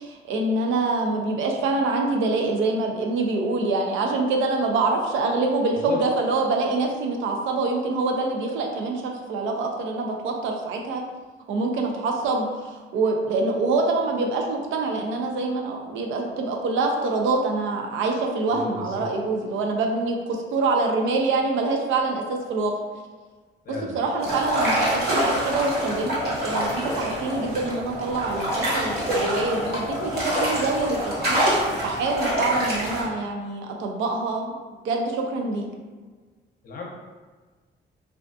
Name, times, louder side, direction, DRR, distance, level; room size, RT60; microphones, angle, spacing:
voice 1, 0.0-11.0 11.5-22.7 23.9-31.0 31.3-31.5 31.8-34.6 34.8-35.6, right 3 dB, 80° right, 2 dB, 0.4 m, -25 dB
voice 2, 18.5-19.1 23.6-24.0 36.6-36.8, left 4 dB, 45° left, -1 dB, 0.6 m, -34 dB
sound 1, 24.2-33.0, equal, 50° right, 1.0 m, -26 dB
2.4 x 2.3 x 2.5 m, 1.4 s
cardioid pair, 90°, 20 cm